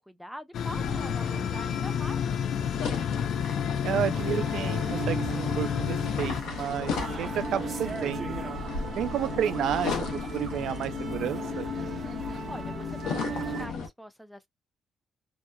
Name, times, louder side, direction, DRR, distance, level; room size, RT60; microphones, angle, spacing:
voice 1, 0.1-2.9 12.5-14.5, equal, ahead, 0.4 m, -44 dB
sound 1, 0.5-6.4, left 8 dB, 65° left, 0.4 m, -30 dB
sound 2, 0.7-13.9, left 5 dB, 80° left, 0.8 m, -35 dB
voice 2, 3.8-8.4 9.0-11.7, right 9 dB, 80° right, 0.3 m, -31 dB
sound 3, 4.1-13.7, right 6 dB, 45° right, 0.8 m, -38 dB
2.8 x 2.1 x 2.2 m
cardioid pair, 90°, 0 cm